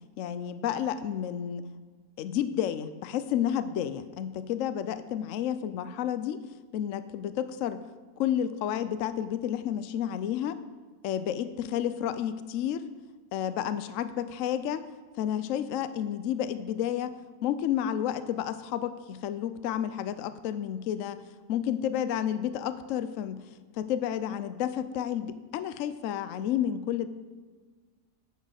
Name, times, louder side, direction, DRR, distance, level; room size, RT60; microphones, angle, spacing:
voice 1, 0.2-1.6 2.2-6.4 6.7-7.8 8.2-10.6 11.0-12.9 13.3-14.8 15.2-17.2 17.4-21.2 21.5-23.4 23.8-27.1, left 10 dB, 70° left, 12 dB, 0.8 m, -31 dB
9.1 x 6.5 x 6.3 m, 1.5 s
omnidirectional pair, 1.8 m